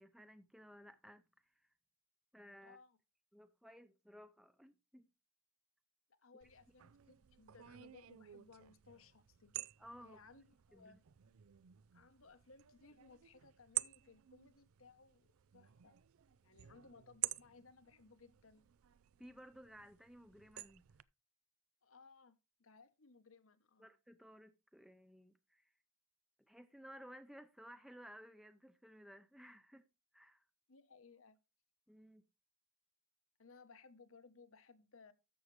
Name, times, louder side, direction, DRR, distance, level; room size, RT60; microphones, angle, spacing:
voice 1, 0.0-1.7 2.3-2.8 3.3-5.1 9.8-10.2 10.7-11.0 19.2-20.8 23.8-25.7 26.5-29.9 30.1-30.5 31.9-32.2, equal, ahead, 0.5 m, -57 dB
voice 2, 2.6-3.0 6.1-9.5 10.0-11.1 11.9-16.0 16.4-18.7 21.8-23.9 30.7-31.4 33.4-35.1, left 4 dB, 70° left, 1.0 m, -62 dB
sound 1, 6.4-21.0, right 17 dB, 85° right, 0.4 m, -49 dB
13.5 x 6.3 x 3.2 m
head